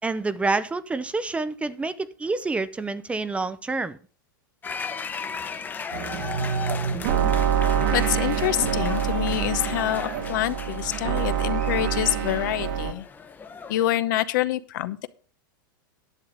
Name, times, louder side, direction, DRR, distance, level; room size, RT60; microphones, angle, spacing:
voice 1, 0.0-4.0, right 3 dB, 10° right, 0.6 m, -28 dB
sound 1, 4.6-13.9, left 5 dB, 15° left, 0.9 m, -37 dB
sound 2, 5.9-12.9, right 8 dB, 65° right, 1.6 m, -26 dB
voice 2, 7.9-13.1 13.7-15.1, left 14 dB, 65° left, 0.8 m, -26 dB
10.5 x 7.2 x 5.0 m
hypercardioid pair, 120°, 11 cm